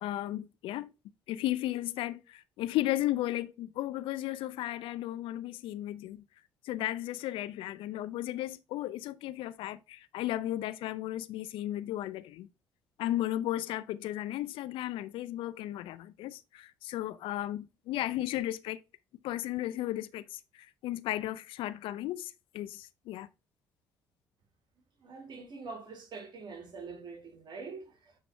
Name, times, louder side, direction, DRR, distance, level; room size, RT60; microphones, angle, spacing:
voice 1, 0.0-0.9 1.3-6.3 6.6-12.5 13.0-18.8 19.2-23.3, left 14 dB, 65° left, 0.6 m, -35 dB
voice 2, 25.0-28.2, right 4 dB, 50° right, 2.1 m, -44 dB
9.5 x 3.6 x 3.3 m
hypercardioid pair, 55°, 10 cm